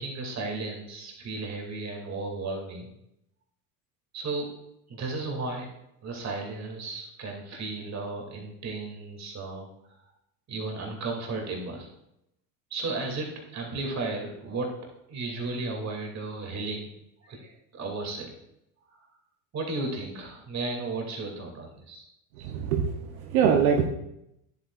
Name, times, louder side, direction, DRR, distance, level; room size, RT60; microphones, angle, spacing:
voice 1, 0.0-2.9 4.1-4.5 4.9-5.7 6.0-9.7 10.5-11.9 12.7-14.7 15.1-16.9 17.2-18.3 19.5-22.1, right 3 dB, 40° right, 1 dB, 2.7 m, -34 dB
voice 2, 22.4-23.9, right 7 dB, 80° right, 3 dB, 0.9 m, -24 dB
10.0 x 8.4 x 2.5 m, 0.82 s
hypercardioid pair, 85°, 43 cm